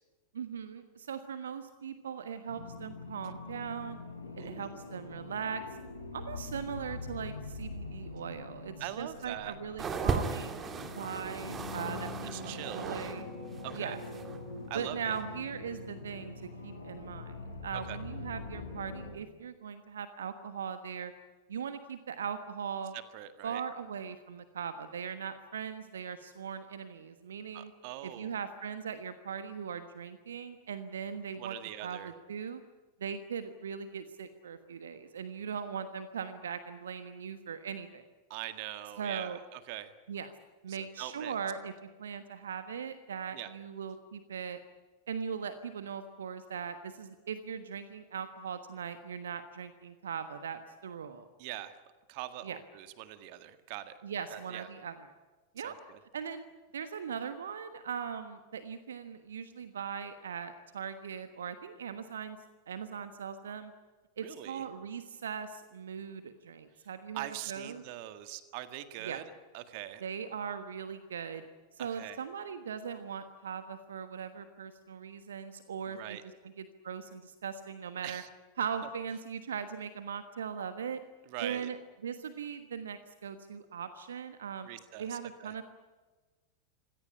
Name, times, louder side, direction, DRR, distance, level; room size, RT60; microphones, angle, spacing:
voice 1, 0.3-4.0 4.4-5.6 6.1-13.3 13.7-14.0 14.7-21.1 21.5-23.0 23.4-27.7 28.0-32.6 33.0-38.0 39.0-39.4 40.1-40.3 40.6-44.6 45.1-51.3 52.4-52.6 54.0-55.1 55.5-55.7 56.1-62.4 62.7-63.7 64.2-67.8 69.0-69.2 70.0-71.5 71.7-78.2 78.6-81.0 81.4-84.7 85.0-85.6, right 7 dB, 65° right, 10 dB, 1.3 m, -40 dB
sound 1, 2.5-19.1, left 3 dB, 80° left, 6.3 m, -44 dB
voice 2, 4.4-4.8 8.8-9.5 12.3-12.9 13.6-14.0 14.7-15.1 17.9-18.0 23.1-23.6 27.5-28.3 31.4-32.1 38.3-39.9 40.7-41.3 43.3-43.5 51.4-51.7 52.1-54.0 54.3-54.7 55.6-56.0 64.2-64.6 67.1-69.2 69.5-70.0 71.8-72.2 75.9-76.2 78.0-78.3 81.3-81.7 84.6-85.5, right 14 dB, 45° right, 10 dB, 1.7 m, -42 dB
sound 2, 9.8-13.2 13.5-14.4 15.1-15.2, right 5 dB, 25° right, 2.4 m, -36 dB
26.0 x 17.5 x 9.9 m, 1.3 s
figure-of-eight pair, 90°, 0 cm